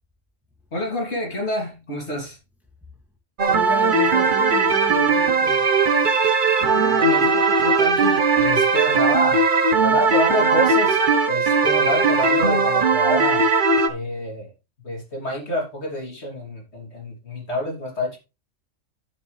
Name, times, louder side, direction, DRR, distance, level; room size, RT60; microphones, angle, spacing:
voice 1, 0.7-2.4 6.9-9.4 9.8-11.0 11.3-13.4 13.9-14.5 14.8-18.2, equal, 55° left, 3.3 m, -27 dB
voice 2, 3.4-5.7 6.6-7.0, equal, ahead, 2.5 m, -33 dB
sound 1, 3.4-13.9, right 4 dB, 40° right, 1.1 m, -18 dB
11.5 x 7.1 x 3.3 m
omnidirectional pair, 1.3 m